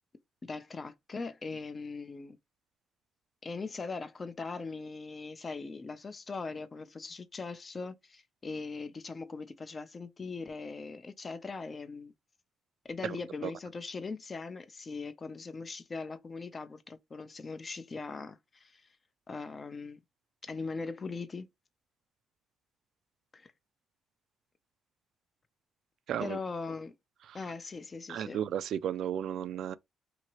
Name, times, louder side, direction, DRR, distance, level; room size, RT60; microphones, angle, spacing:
voice 1, 0.4-2.4 3.4-12.1 12.8-18.8 19.3-20.0 20.4-21.5 23.3-23.5 26.2-26.9 27.3-28.4, left 4 dB, 35° left, 0.6 m, -40 dB
voice 2, 26.1-26.4 27.3-27.4 28.1-29.8, right 10 dB, 70° right, 0.3 m, -34 dB
2.8 x 2.7 x 3.0 m
cardioid pair, 90°, 0 cm